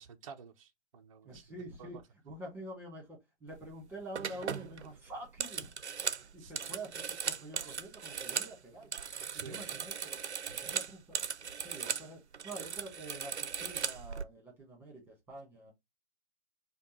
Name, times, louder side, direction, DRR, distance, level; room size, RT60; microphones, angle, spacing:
voice 1, 0.0-1.4 1.8-2.0 6.4-6.5 9.3-9.7, right 6 dB, 30° right, 0.5 m, -50 dB
voice 2, 1.2-5.7 6.2-9.0 9.3-11.2 11.6-15.7, right 1 dB, 5° right, 1.4 m, -47 dB
sound 1, 3.5-3.7 4.1-8.5 8.8-12.1 12.3-14.2, right 7 dB, 80° right, 0.6 m, -38 dB
5.1 x 2.2 x 2.9 m
figure-of-eight pair, 130°, 34 cm